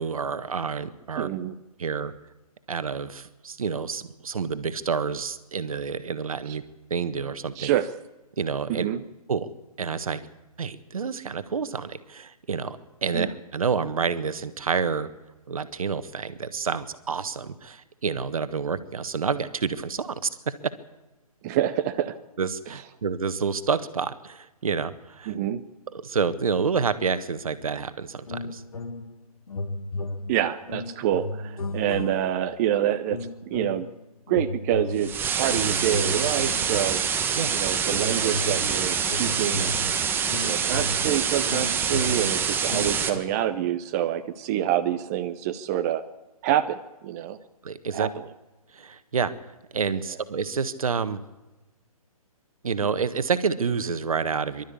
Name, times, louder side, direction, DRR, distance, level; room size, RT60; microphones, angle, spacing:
voice 1, 0.0-1.3 1.8-2.1 2.7-6.6 6.9-7.7 8.4-8.9 9.3-9.5 9.8-10.2 10.6-13.3 13.5-15.1 15.5-20.5 22.4-25.3 26.0-28.6 37.4-37.6 47.6-48.1 48.7-49.3 49.7-51.2 52.6-54.6, right 5 dB, 65° right, 12 dB, 1.5 m, -28 dB
voice 2, 1.1-1.6 6.5-6.6 7.6-7.9 8.7-9.0 13.1-13.3 21.4-22.2 25.3-25.6 30.3-33.9 34.3-37.0 37.5-39.7 40.4-46.0 46.4-47.4 47.9-48.3, right 11 dB, 25° right, 9 dB, 0.8 m, -27 dB
sound 1, 28.3-29.2 29.5-32.5 33.1-33.9 34.3-37.4 37.9-43.2, left 2 dB, 70° left, 1.5 m, -34 dB
sound 2, 35.0-43.1, right 7 dB, 10° right, 1.3 m, -26 dB
24.5 x 12.5 x 8.5 m, 1.1 s
figure-of-eight pair, 135°, 19 cm